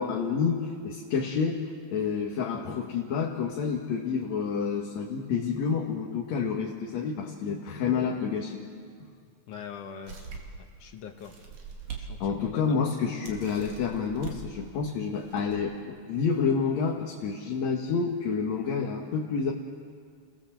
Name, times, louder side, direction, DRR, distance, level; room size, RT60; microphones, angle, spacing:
voice 1, 0.0-8.6 9.0-9.1 12.2-19.5, left 5 dB, 65° left, 0 dB, 2.6 m, -29 dB
voice 2, 9.5-10.2 10.8-11.3 12.0-12.6, left 7 dB, 90° left, 4 dB, 3.0 m, -42 dB
sound 1, 10.1-10.6 11.2-12.1 12.5-12.6 13.2-14.4 15.1-15.6, right 6 dB, 85° right, 4.0 m, -41 dB
29.5 x 18.5 x 7.5 m, 2.1 s
omnidirectional pair, 3.4 m